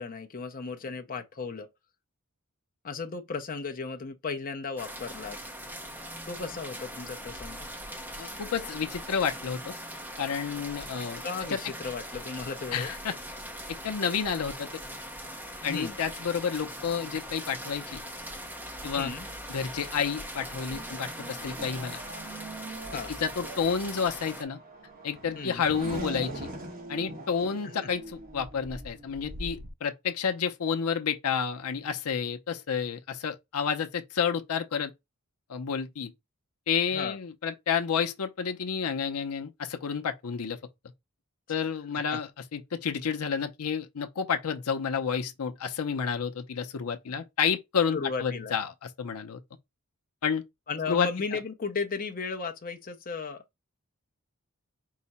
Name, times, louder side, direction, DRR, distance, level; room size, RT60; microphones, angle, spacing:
voice 1, 0.0-1.7 2.8-5.4 6.3-7.7 11.2-12.9 15.6-16.0 19.0-19.3 22.9-23.1 25.3-25.6 27.6-27.7 36.9-37.2 42.1-42.2 47.1-47.2 47.9-48.5 50.7-53.4, left 4 dB, 40° left, 0.6 m, -35 dB
sound 1, 4.8-24.4, equal, 10° right, 0.6 m, -41 dB
voice 2, 8.2-9.7 10.2-11.2 11.5-11.6 12.7-13.2 13.8-14.7 15.6-18.0 18.8-19.1 19.5-22.0 23.2-24.6 25.0-26.5 26.9-34.9 35.5-36.1 36.7-40.6 41.5-48.7 49.0-49.4 50.2-50.4 50.9-51.1, left 6 dB, 80° left, 0.6 m, -30 dB
Race car auto racing / Accelerating revving vroom, 20.6-29.7, right 2 dB, 40° right, 1.2 m, -42 dB
4.7 x 2.1 x 4.0 m
head